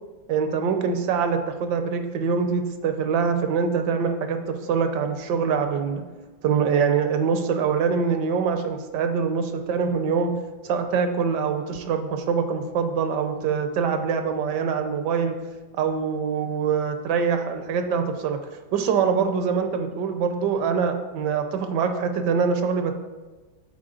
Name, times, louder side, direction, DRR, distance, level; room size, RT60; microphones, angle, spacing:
voice 1, 0.3-6.0 6.4-10.3 10.6-15.3 15.8-18.4 18.7-22.9, right 6 dB, 75° right, 7 dB, 1.1 m, -24 dB
7.6 x 4.4 x 3.7 m, 1.2 s
omnidirectional pair, 2.1 m